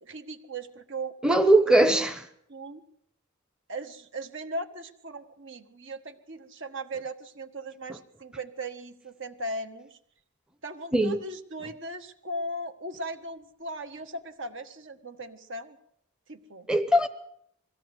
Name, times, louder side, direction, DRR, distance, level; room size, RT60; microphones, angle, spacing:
voice 1, 0.0-1.4 1.9-2.1 2.5-2.8 3.7-10.0 10.6-15.8 16.3-16.7, right 1 dB, 60° right, 1.6 m, -38 dB
voice 2, 1.2-2.2 10.9-11.2 16.7-17.1, right 1 dB, 5° right, 0.8 m, -20 dB
22.0 x 16.0 x 8.1 m
head